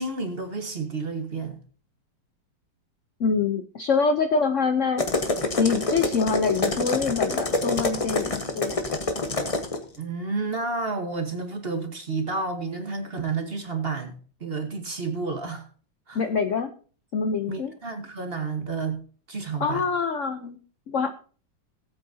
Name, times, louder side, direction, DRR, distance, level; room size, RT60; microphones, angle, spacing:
voice 1, 0.0-1.6 10.0-15.7 16.1-16.2 17.5-19.0 19.3-19.8, right 4 dB, 35° right, 1.3 m, -30 dB
voice 2, 3.2-5.0 5.6-9.0 16.1-16.7 17.1-17.7 19.6-20.6 20.9-21.1, left 5 dB, 60° left, 0.8 m, -25 dB
sound 1, 5.0-9.8, left 2 dB, 25° left, 0.9 m, -26 dB
17.5 x 8.5 x 2.7 m
omnidirectional pair, 2.1 m